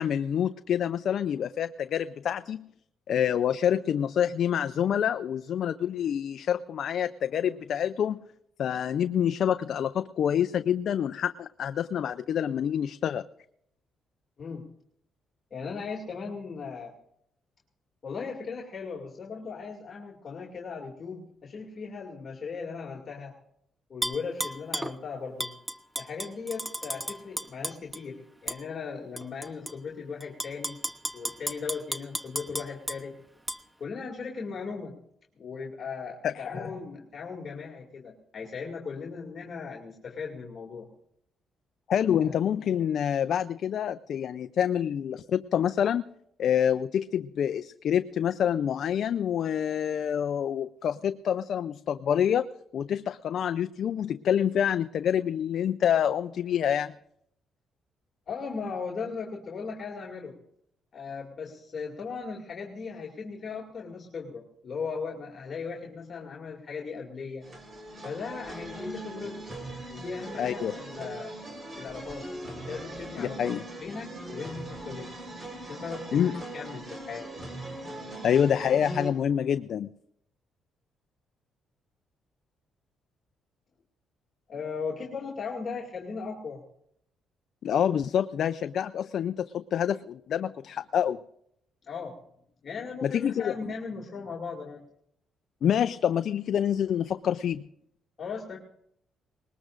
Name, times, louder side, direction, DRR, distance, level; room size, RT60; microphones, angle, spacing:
voice 1, 0.0-2.6 3.1-8.2 8.6-13.2 36.2-36.3 41.9-46.0 46.4-52.5 52.7-56.9 70.4-70.7 73.2-73.6 76.1-76.4 78.2-79.9 87.6-91.2 93.0-93.5 95.6-97.6, left 9 dB, 65° left, 11 dB, 0.4 m, -27 dB
voice 2, 15.5-16.9 18.0-23.3 23.9-25.6 26.0-30.8 31.1-33.2 33.8-35.0 35.4-40.9 42.1-42.3 58.3-60.4 60.9-67.5 68.0-69.4 69.9-71.3 71.8-72.3 72.5-75.1 75.6-76.2 76.5-77.3 84.5-86.6 91.8-92.1 92.6-94.8 98.2-98.6, left 5 dB, 45° left, -2 dB, 2.5 m, -38 dB
Tap / Glass, 24.0-24.9 25.4-28.0 28.5-28.6 29.2-29.7 30.2-33.0 33.5-33.6, right 1 dB, 5° right, 0.8 m, -33 dB
sound 1, 67.4-79.1, right 1 dB, 35° right, 4.1 m, -40 dB
20.5 x 19.5 x 2.5 m, 0.74 s
cardioid pair, 90°, 0 cm